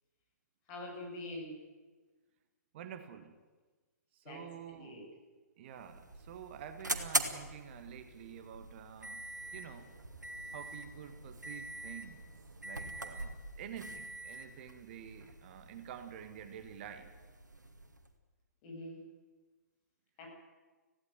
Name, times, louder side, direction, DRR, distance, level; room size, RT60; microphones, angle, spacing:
voice 1, 0.7-1.5 4.2-4.4 4.7-5.0 18.6-19.0 20.2-20.3, left 1 dB, 30° left, 1 dB, 7.3 m, -44 dB
voice 2, 2.7-3.4 4.1-5.0 5.6-9.2 9.5-9.9 10.5-12.2 12.6-17.1, right 9 dB, 40° right, 8 dB, 1.6 m, -49 dB
sound 1, 5.6-18.1, right 2 dB, 80° right, 2.3 m, -42 dB
18.0 x 16.0 x 9.5 m, 1.3 s
figure-of-eight pair, 125°, 10 cm